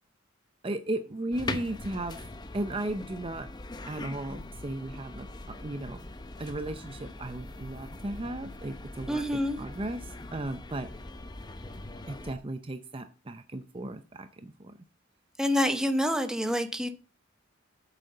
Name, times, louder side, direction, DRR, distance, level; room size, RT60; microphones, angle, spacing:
voice 1, 0.6-3.5 3.8-6.1 6.4-10.9 12.1-14.8, right 1 dB, 25° right, 9 dB, 0.6 m, -36 dB
sound 1, 1.3-12.3, left 2 dB, 20° left, 0.8 m, -42 dB
voice 2, 9.1-9.6 15.4-16.9, equal, 5° right, 7 dB, 0.9 m, -27 dB
8.4 x 6.5 x 6.6 m, 0.38 s
head